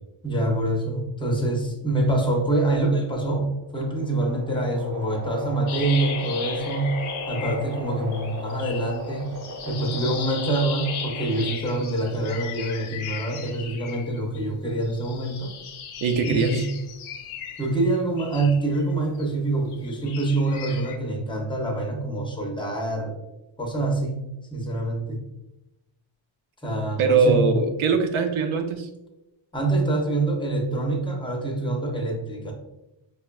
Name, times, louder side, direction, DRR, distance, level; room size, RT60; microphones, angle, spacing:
voice 1, 0.2-3.5 3.7-6.9 7.3-9.4 9.7-15.5 16.3-16.7 17.6-23.1 23.6-24.2 24.5-25.2 26.6-27.4 29.5-32.5, right 2 dB, 10° left, 0 dB, 0.5 m, -25 dB
sound 1, 3.5-11.8, left 1 dB, 45° right, 0.7 m, -36 dB
sound 2, 5.7-7.9 8.1-14.4 14.8-19.3 19.7-21.0, left 8 dB, 90° left, 0.6 m, -37 dB
voice 2, 16.0-16.7 27.0-28.9, right 4 dB, 85° right, 6 dB, 0.6 m, -21 dB
4.6 x 2.2 x 2.3 m, 0.94 s
wide cardioid pair, 150°, 48 cm